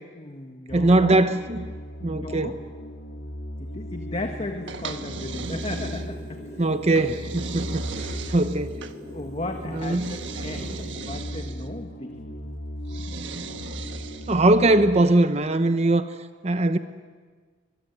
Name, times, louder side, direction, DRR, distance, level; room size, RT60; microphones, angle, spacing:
voice 1, 0.2-1.2 2.0-2.6 3.6-6.6 8.2-8.4 9.1-12.4, left 2 dB, 35° left, 1.7 m, -35 dB
sound 1, 0.7-15.0, equal, 85° left, 3.8 m, -37 dB
voice 2, 0.7-1.6 2.0-2.6 6.6-8.8 9.7-10.2 14.3-16.1 16.4-16.8, right 2 dB, 35° right, 0.9 m, -21 dB
sound 2, 4.7-6.4 7.0-9.0 9.8-11.7 12.9-14.5, right 4 dB, 85° right, 1.4 m, -37 dB
sound 3, 5.3-11.0, equal, 20° right, 4.9 m, -43 dB
24.5 x 21.5 x 9.5 m
head